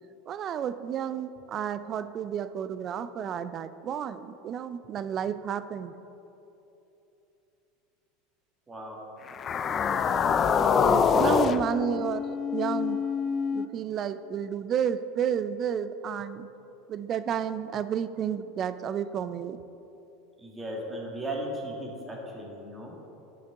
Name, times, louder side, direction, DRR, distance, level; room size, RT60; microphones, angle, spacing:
voice 1, 0.3-6.0 10.8-12.2 12.5-13.1 13.5-16.5 16.9-19.6, right 8 dB, 40° right, 13 dB, 0.4 m, -31 dB
voice 2, 8.7-9.0 11.1-11.3 20.4-22.9, right 1 dB, 20° right, -2 dB, 1.9 m, -36 dB
sound 1, 9.3-13.7, left 6 dB, 35° left, 0.4 m, -25 dB
12.0 x 5.8 x 3.7 m, 3.0 s
supercardioid pair, 110°, 0 cm